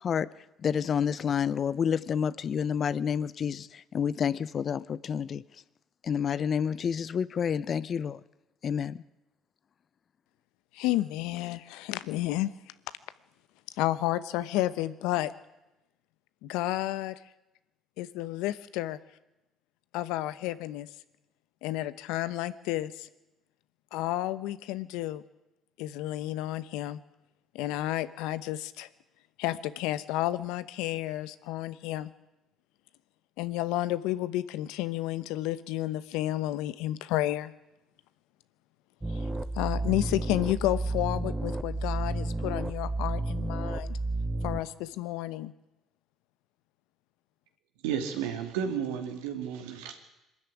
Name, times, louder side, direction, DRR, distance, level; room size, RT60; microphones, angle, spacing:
voice 1, 0.6-5.4 6.0-8.2 8.6-9.0, left 7 dB, 50° left, 0.8 m, -29 dB
voice 2, 10.7-12.5 13.8-15.3 16.4-17.1 18.0-19.0 19.9-20.9 21.6-23.1 23.9-25.2 25.8-27.0 27.5-28.9 29.4-32.1 33.4-37.5 39.1-39.2 39.5-44.0 44.4-45.5, left 15 dB, 80° left, 0.9 m, -31 dB
sound 1, 39.0-44.6, right 2 dB, 15° right, 1.3 m, -31 dB
voice 3, 47.8-50.0, right 8 dB, 90° right, 2.7 m, -32 dB
22.5 x 13.0 x 9.9 m
supercardioid pair, 70°, 0 cm